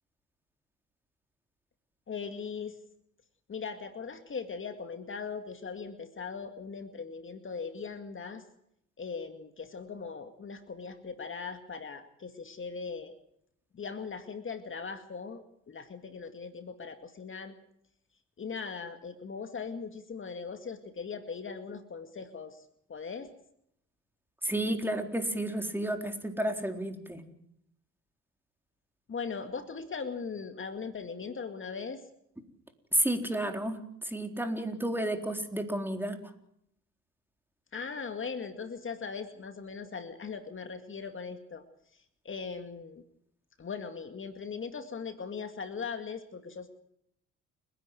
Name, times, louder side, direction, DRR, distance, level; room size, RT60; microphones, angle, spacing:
voice 1, 2.1-2.8 3.5-8.4 9.0-13.2 13.7-17.6 18.4-23.3 29.1-32.0 37.7-41.6 41.9-43.0 43.6-46.7, left 5 dB, 40° left, 8 dB, 2.2 m, -39 dB
voice 2, 24.4-27.2 32.9-36.2, right 1 dB, 5° right, 5 dB, 4.1 m, -31 dB
29.5 x 11.0 x 9.4 m, 0.74 s
supercardioid pair, 70°, 31 cm